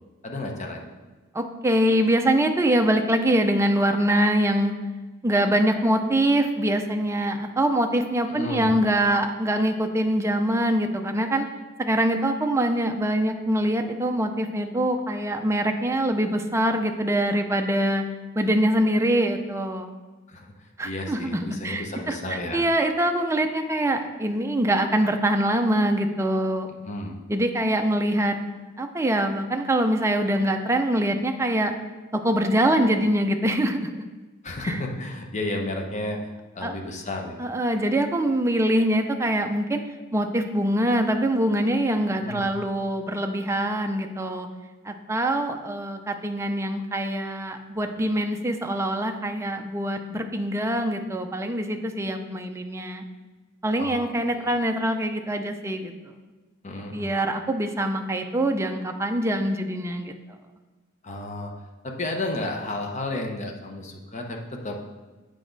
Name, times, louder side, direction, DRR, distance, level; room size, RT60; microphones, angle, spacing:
voice 1, 0.2-0.9 8.3-8.7 20.3-20.5 20.8-22.7 26.8-27.2 34.4-37.5 42.2-42.5 53.8-54.1 54.3-54.5 56.6-57.1 61.0-61.5 61.8-64.8, left 2 dB, 35° left, 2 dB, 0.9 m, -32 dB
voice 2, 1.3-4.7 5.2-11.5 11.8-18.0 18.4-19.9 20.8-26.7 27.3-28.4 28.8-31.7 32.1-34.0 34.6-34.7 36.6-36.7 37.4-39.8 40.1-44.5 44.9-53.0 53.6-55.9 56.9-60.1, right 1 dB, 15° right, 5 dB, 0.4 m, -24 dB
8.1 x 4.9 x 3.9 m, 1.2 s
head